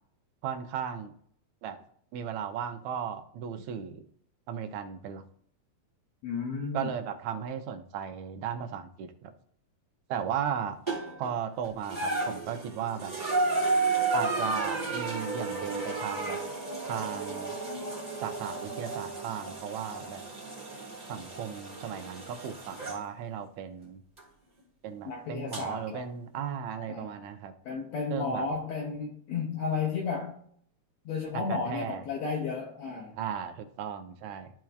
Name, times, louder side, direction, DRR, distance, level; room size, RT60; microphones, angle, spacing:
voice 1, 0.4-1.2 1.6-1.8 2.1-4.1 4.5-5.2 6.7-9.3 10.1-10.8 11.2-13.1 14.1-16.4 16.9-17.6 18.2-20.2 21.1-24.0 24.8-27.5 28.1-28.5 31.3-32.0 33.2-34.5, right 8 dB, 75° right, 7 dB, 1.9 m, -36 dB
voice 2, 6.2-6.9 25.1-26.1 26.9-27.2 27.7-30.4 31.1-33.2, left 5 dB, 70° left, 0 dB, 1.9 m, -33 dB
Kettle fill, 10.9-11.3 11.8-23.0 24.2-24.3 25.5-25.6, right 3 dB, 5° right, 2.4 m, -32 dB
13.0 x 4.5 x 2.4 m, 0.62 s
omnidirectional pair, 3.6 m